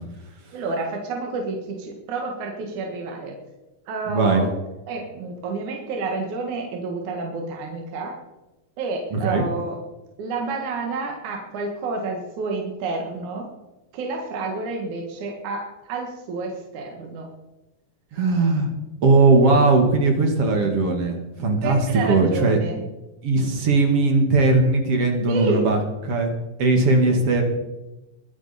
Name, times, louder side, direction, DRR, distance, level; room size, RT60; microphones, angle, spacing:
voice 1, 0.5-3.3 3.9-4.5 4.9-8.2 8.8-9.8 10.2-13.5 13.9-17.3 21.6-22.9 25.3-25.6 27.0-27.1, right 3 dB, 70° right, 1 dB, 3.0 m, -29 dB
voice 2, 4.1-4.4 9.1-9.4 18.1-18.7 19.0-21.8 22.1-22.6 23.2-25.8 26.0-26.3 26.6-27.4, right 3 dB, 50° right, 3 dB, 2.5 m, -19 dB
22.0 x 9.5 x 4.2 m, 1.0 s
omnidirectional pair, 3.7 m